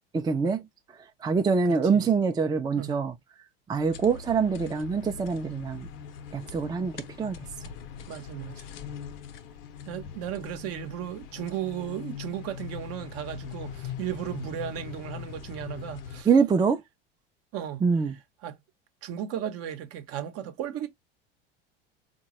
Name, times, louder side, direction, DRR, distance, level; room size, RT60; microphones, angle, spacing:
voice 1, 0.1-0.6 1.2-3.1 3.7-5.9 6.3-7.4 16.3-16.8 17.8-18.1, right 5 dB, 15° right, 0.5 m, -24 dB
voice 2, 1.6-2.0 2.8-2.9 8.1-8.6 9.9-16.3 17.5-17.8 18.4-18.6 19.0-20.9, right 10 dB, 50° right, 0.8 m, -35 dB
sound 1, 3.7-16.2, left 7 dB, 70° left, 0.7 m, -41 dB
3.9 x 2.2 x 2.9 m
hypercardioid pair, 85°, 30 cm